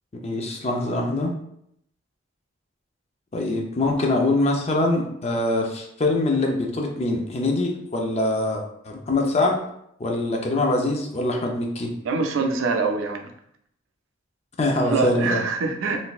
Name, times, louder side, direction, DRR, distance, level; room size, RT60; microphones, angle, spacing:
voice 1, 0.2-1.3 3.3-9.6 10.0-11.9 14.6-15.4, left 2 dB, 30° left, 1 dB, 0.5 m, -23 dB
voice 2, 12.0-13.2 14.8-16.0, right 4 dB, 80° right, 4 dB, 0.5 m, -24 dB
3.8 x 2.6 x 2.4 m, 0.73 s
head